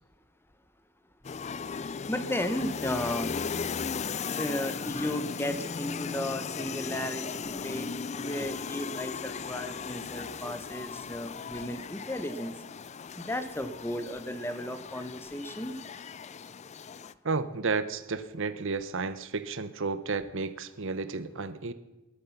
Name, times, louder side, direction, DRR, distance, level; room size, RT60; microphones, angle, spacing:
sound 1, 1.2-17.1, left 5 dB, 30° left, 0.4 m, -37 dB
voice 1, 2.1-3.3 4.4-7.9 8.1-12.5 13.2-15.8, left 1 dB, 10° left, 10 dB, 1.0 m, -34 dB
voice 2, 17.2-21.7, right 4 dB, 60° right, 13 dB, 0.9 m, -32 dB
20.0 x 11.5 x 5.9 m, 1.1 s
head